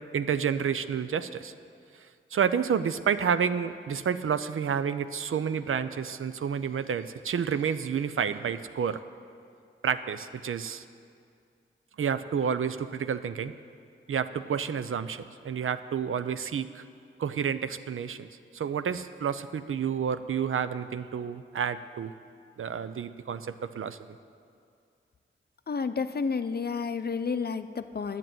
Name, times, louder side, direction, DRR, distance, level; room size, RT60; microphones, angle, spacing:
voice 1, 0.1-1.5 1.9-9.0 9.8-10.8 12.0-13.5 14.1-16.8 17.2-18.3 18.5-22.1 22.6-24.0, right 7 dB, 80° right, 12 dB, 0.5 m, -30 dB
voice 2, 25.7-28.2, left 5 dB, 50° left, 10 dB, 0.6 m, -30 dB
10.0 x 7.6 x 9.3 m, 2.3 s
wide cardioid pair, 60°, 21 cm